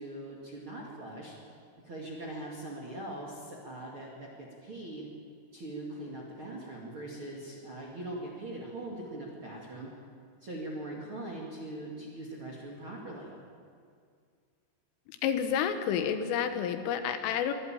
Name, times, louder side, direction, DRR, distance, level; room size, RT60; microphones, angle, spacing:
voice 1, 0.0-1.3 1.8-5.1 5.5-9.9 10.4-13.3, right 1 dB, 40° right, -3 dB, 1.9 m, -41 dB
voice 2, 15.2-17.5, left 8 dB, 85° left, 8 dB, 3.7 m, -29 dB
23.0 x 12.5 x 9.0 m, 2.2 s
omnidirectional pair, 5.7 m